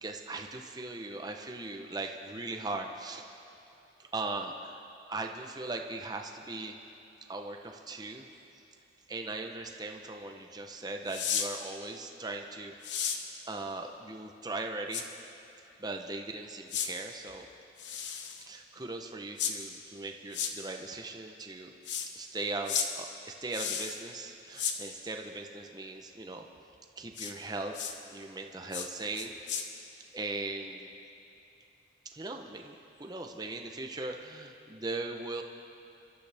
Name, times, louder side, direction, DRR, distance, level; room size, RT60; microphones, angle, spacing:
voice 1, 0.0-3.2 4.0-4.8 5.1-6.7 7.3-8.3 9.1-13.1 13.5-15.0 15.8-17.5 18.4-21.7 22.1-26.5 27.0-29.6 30.1-30.9 32.0-35.4, right 2 dB, 20° right, 3 dB, 0.8 m, -39 dB
sound 1, 11.1-11.5 12.8-13.2 14.9-15.0 16.7-16.9 17.8-18.4 19.4-19.5 20.3-20.5 21.8-22.1 22.7-22.9 23.5-24.0 24.6-24.8 27.1-27.3 27.7-27.9 28.7-28.9 29.2-29.6, left 7 dB, 90° left, 1.1 m, -33 dB
27.5 x 12.5 x 3.5 m, 2.9 s
head